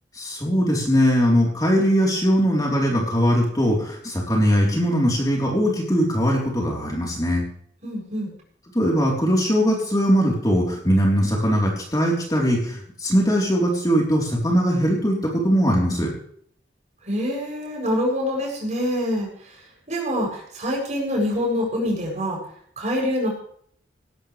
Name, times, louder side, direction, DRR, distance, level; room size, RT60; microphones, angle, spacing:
voice 1, 0.1-7.4 8.7-16.1, equal, 20° left, -2 dB, 3.9 m, -20 dB
voice 2, 7.8-8.3 17.0-19.6 19.9-22.4 22.8-23.3, equal, 40° right, -2 dB, 7.9 m, -25 dB
18.0 x 15.0 x 3.4 m, 0.62 s
head